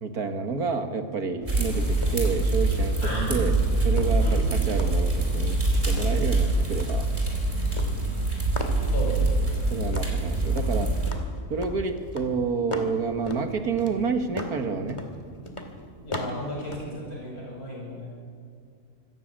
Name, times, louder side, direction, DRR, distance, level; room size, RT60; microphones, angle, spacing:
voice 1, 0.0-3.5 3.8-7.1 9.7-10.9 11.5-15.0, right 4 dB, 80° right, 6 dB, 2.2 m, -29 dB
sound 1, 1.4-17.0, left 1 dB, 20° left, 2.2 m, -40 dB
sound 2, 1.5-11.1, right 2 dB, 30° right, 4.6 m, -24 dB
voice 2, 3.0-3.5 4.2-4.5 8.9-9.4 16.0-18.1, left 1 dB, 75° left, -3 dB, 8.1 m, -34 dB
25.0 x 14.5 x 8.9 m, 2.3 s
omnidirectional pair, 1.6 m